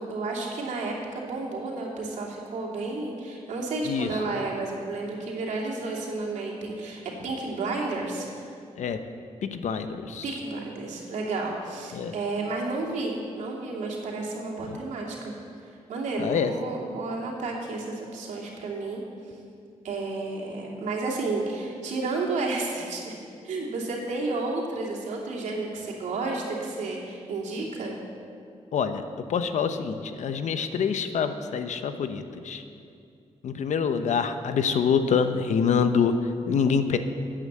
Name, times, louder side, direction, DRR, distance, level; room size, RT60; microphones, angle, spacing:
voice 1, 0.0-8.5 10.2-15.3 15.6-19.0 19.8-23.2 23.4-27.9, right 3 dB, 85° right, -2 dB, 2.7 m, -31 dB
voice 2, 9.4-10.2 11.9-12.1 14.7-14.8 16.2-16.5 28.7-29.0 29.3-32.6 33.4-36.2 36.5-37.0, left 6 dB, 75° left, 9 dB, 0.9 m, -26 dB
11.0 x 9.0 x 7.4 m, 2.4 s
cardioid pair, 75°, 12 cm